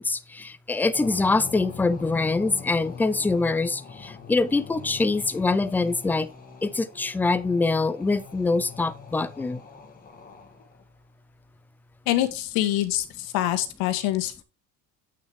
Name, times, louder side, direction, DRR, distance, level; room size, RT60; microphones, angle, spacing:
voice 1, 0.0-6.3 6.6-9.6, left 3 dB, 5° left, 0.3 m, -24 dB
sound 1, 0.9-10.8, left 5 dB, 25° left, 1.7 m, -42 dB
voice 2, 12.0-14.4, left 14 dB, 75° left, 1.5 m, -25 dB
8.7 x 6.3 x 3.5 m
cardioid pair, 125°, 36 cm